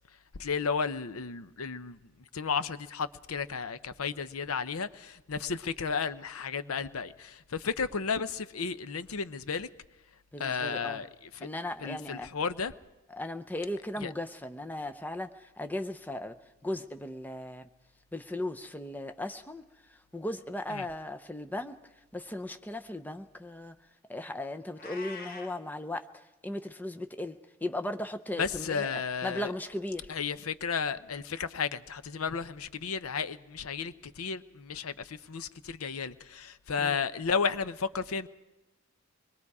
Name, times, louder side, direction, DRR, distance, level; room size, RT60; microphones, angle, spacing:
voice 1, 0.4-2.0 2.3-9.7 10.4-11.1 11.3-11.5 11.8-12.7 14.0-14.1 20.7-20.9 28.4-29.5 30.1-38.3, left 5 dB, 85° left, 0.7 m, -33 dB
voice 2, 10.3-11.0 11.4-12.3 13.1-16.4 16.6-17.7 18.1-19.6 19.9-21.8 22.1-23.7 24.1-30.2 36.8-37.0, left 1 dB, 10° left, 0.6 m, -37 dB
Meow, 24.8-25.6, left 4 dB, 45° left, 1.4 m, -44 dB
25.0 x 21.5 x 4.8 m
head